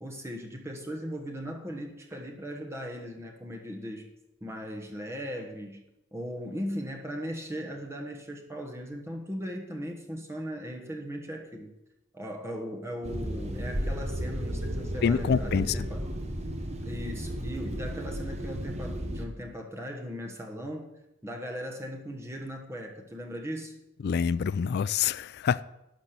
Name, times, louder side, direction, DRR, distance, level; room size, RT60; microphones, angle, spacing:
voice 1, 0.0-4.1 4.4-5.8 6.1-11.7 12.1-16.1 16.8-20.9 21.2-23.8, equal, 15° right, 1.2 m, -38 dB
sound 1, 13.0-19.2, equal, 30° right, 1.0 m, -34 dB
voice 2, 15.0-15.8 24.0-25.7, left 7 dB, 50° left, 0.3 m, -26 dB
11.5 x 6.1 x 6.7 m
head